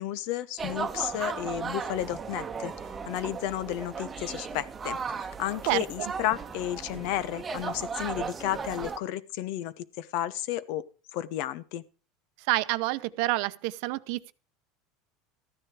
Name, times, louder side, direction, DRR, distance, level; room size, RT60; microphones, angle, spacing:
voice 1, 0.0-2.7 3.1-10.9 11.1-11.8, left 12 dB, 65° left, 0.9 m, -32 dB
sound 1, 0.6-9.0, right 5 dB, 20° right, 1.0 m, -36 dB
voice 2, 5.7-6.1 12.5-14.3, right 20 dB, 70° right, 0.7 m, -28 dB
14.0 x 9.9 x 4.9 m
supercardioid pair, 130°, 0 cm